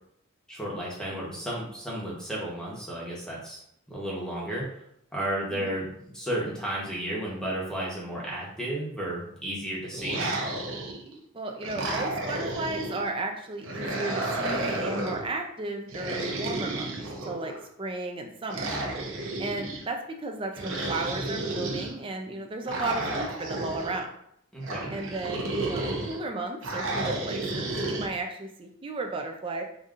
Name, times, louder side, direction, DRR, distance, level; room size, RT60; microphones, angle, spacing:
voice 1, 0.5-3.6 3.9-4.8 5.1-10.3 24.5-24.9, right 1 dB, 5° left, -5 dB, 0.9 m, -33 dB
sound 1, 9.9-11.1 11.6-13.0 13.6-15.3 15.9-17.6 18.5-19.8 20.5-21.9 22.7-24.0 24.6-26.2 26.6-28.1, right 2 dB, 65° right, 0.8 m, -32 dB
voice 2, 11.3-16.9 17.3-18.7 19.4-24.1 24.9-29.6, right 2 dB, 25° right, 3 dB, 0.4 m, -34 dB
5.0 x 2.7 x 2.4 m, 0.72 s
head